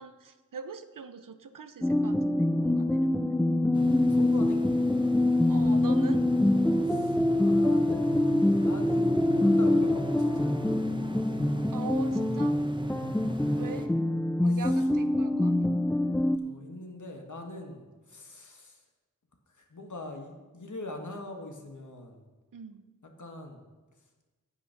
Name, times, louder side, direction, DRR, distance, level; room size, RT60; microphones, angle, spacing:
voice 1, 0.0-3.4 5.5-6.3 11.7-12.6 13.6-13.9 14.4-15.7 22.5-22.8, right 5 dB, 80° right, 11 dB, 0.7 m, -42 dB
sound 1, 1.8-16.4, left 1 dB, 5° left, 0.3 m, -25 dB
voice 2, 3.7-5.1 6.8-10.6 14.5-14.8 16.3-18.8 19.5-22.2 23.2-23.6, left 2 dB, 65° left, 3 dB, 1.7 m, -43 dB
sound 2, 3.7-13.9, right 1 dB, 15° right, 0.9 m, -38 dB
9.7 x 8.3 x 5.8 m, 1.2 s
wide cardioid pair, 45°, 32 cm